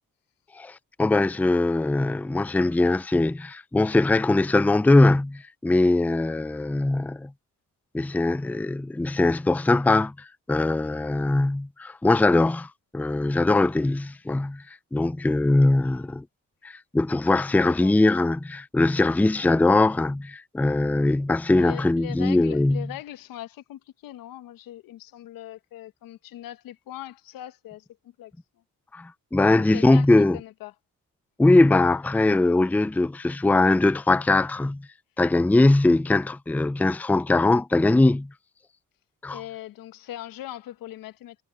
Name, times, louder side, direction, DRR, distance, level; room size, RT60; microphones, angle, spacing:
voice 1, 0.6-7.3 7.9-12.7 12.9-14.6 14.9-16.2 16.6-22.9 28.9-30.4 31.4-34.9 35.2-38.3 39.2-39.4, left 2 dB, 5° left, 0.5 m, -21 dB
voice 2, 17.6-18.0 21.5-27.8 28.2-28.3 29.7-30.7 39.3-41.4, left 13 dB, 90° left, 1.4 m, -40 dB
cardioid pair, 85°, 33 cm